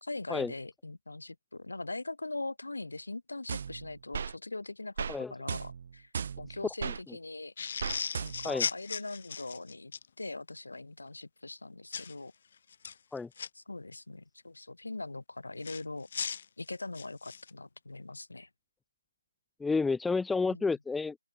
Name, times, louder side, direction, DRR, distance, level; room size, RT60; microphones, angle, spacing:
voice 1, 0.0-6.1 6.4-7.5 8.2-9.9 10.2-12.3 13.5-16.1 16.6-18.5 20.5-20.6, left 2 dB, 55° left, 2.9 m, -41 dB
sound 1, 3.5-4.3 5.0-5.2 5.5-7.0 7.8-8.6, right 6 dB, 25° right, 3.3 m, -36 dB
sound 2, 7.6-10.1 11.9-12.1 12.7-13.5 15.6-17.5, left 6 dB, 25° left, 1.4 m, -37 dB
voice 2, 19.6-21.2, left 4 dB, ahead, 0.7 m, -30 dB
open air
figure-of-eight pair, 170°, 0 cm